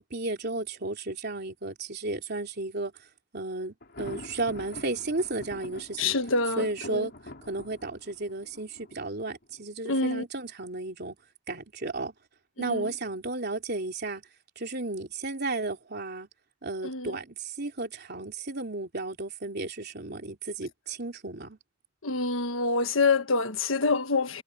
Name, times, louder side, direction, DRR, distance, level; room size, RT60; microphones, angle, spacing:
voice 1, 0.0-2.9 3.3-6.2 6.6-7.1 7.5-11.1 11.5-12.1 12.6-14.2 14.5-16.3 16.6-21.6, right 2 dB, 55° right, 3.4 m, -33 dB
Thunder, 3.8-9.6, left 1 dB, 55° left, 4.4 m, -45 dB
voice 2, 6.0-7.1 9.8-10.2 12.6-12.9 16.8-17.2 22.0-24.4, left 3 dB, 75° left, 1.5 m, -27 dB
head